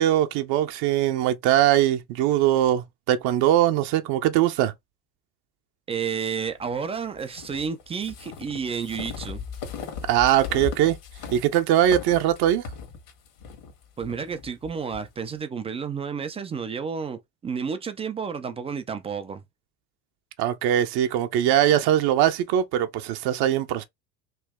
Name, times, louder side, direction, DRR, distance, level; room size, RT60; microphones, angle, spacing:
voice 1, 0.0-4.7 10.1-11.0 11.3-12.6 20.4-23.8, right 11 dB, 50° right, 0.7 m, -21 dB
voice 2, 5.9-9.5 14.0-19.4, right 6 dB, 15° right, 0.3 m, -31 dB
sound 1, 7.2-15.1, left 6 dB, 60° left, 1.5 m, -38 dB
3.1 x 2.7 x 3.5 m
hypercardioid pair, 75°, 50 cm